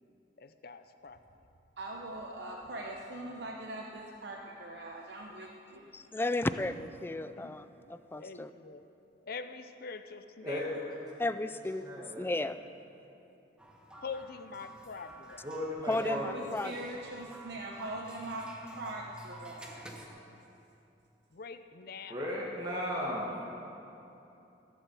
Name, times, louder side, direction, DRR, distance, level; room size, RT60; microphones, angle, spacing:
voice 1, 0.4-1.2 7.3-7.5 8.1-8.8 9.2-10.7 14.0-15.5 21.3-22.2, left 5 dB, 55° left, 10 dB, 0.6 m, -44 dB
voice 2, 1.8-5.8 16.0-20.0, right 1 dB, 65° right, -1 dB, 0.9 m, -42 dB
voice 3, 5.9-8.5 11.2-12.6 15.9-16.8, left 2 dB, 10° left, 12 dB, 0.3 m, -34 dB
voice 4, 10.4-11.0 11.8-12.3 15.4-16.5 22.1-23.4, equal, 20° right, -5 dB, 1.5 m, -36 dB
sound 1, 13.6-20.1, right 1 dB, 5° right, 1.0 m, -51 dB
15.0 x 7.3 x 7.5 m, 2.9 s
head